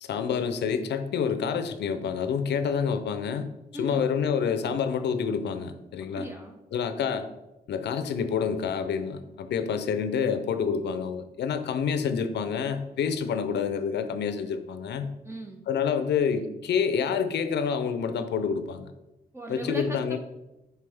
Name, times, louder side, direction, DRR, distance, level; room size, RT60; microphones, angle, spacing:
voice 1, 0.0-3.5 3.8-6.3 6.7-7.3 7.7-15.1 15.7-18.9 19.5-20.2, left 6 dB, 85° left, 9 dB, 0.6 m, -28 dB
voice 2, 3.7-4.1 6.1-6.6 15.2-15.6 19.3-20.2, equal, 15° right, 3 dB, 0.7 m, -37 dB
6.7 x 4.6 x 3.5 m, 0.97 s
cardioid pair, 85°, 17 cm